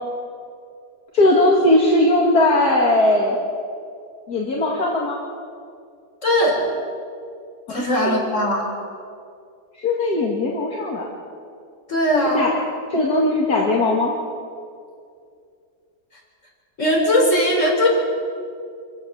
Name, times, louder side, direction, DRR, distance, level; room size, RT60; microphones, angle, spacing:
voice 1, 1.1-3.4 4.3-5.2 7.7-8.3 9.8-11.1 12.3-12.5 12.9-14.1, left 1 dB, 70° left, -2 dB, 2.7 m, -19 dB
voice 2, 6.2-6.6 7.7-8.6 11.9-12.4 16.8-17.9, left 1 dB, 45° left, -1 dB, 5.0 m, -19 dB
26.0 x 16.0 x 7.1 m, 2.3 s
omnidirectional pair, 1.7 m